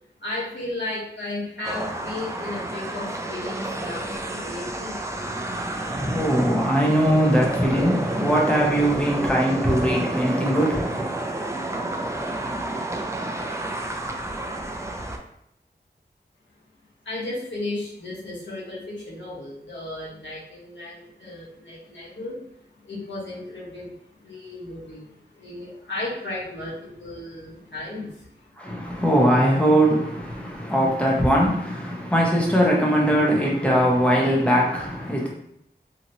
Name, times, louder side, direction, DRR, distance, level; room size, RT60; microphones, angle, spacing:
voice 1, 0.2-5.0 17.0-22.5 22.8-28.5, left 2 dB, 90° left, 1.1 m, -34 dB
sound 1, 1.6-15.2, right 2 dB, 15° right, 0.4 m, -30 dB
voice 2, 5.5-11.1 28.6-35.3, equal, 5° left, 0.8 m, -21 dB
2.8 x 2.7 x 2.8 m
wide cardioid pair, 55°, 18 cm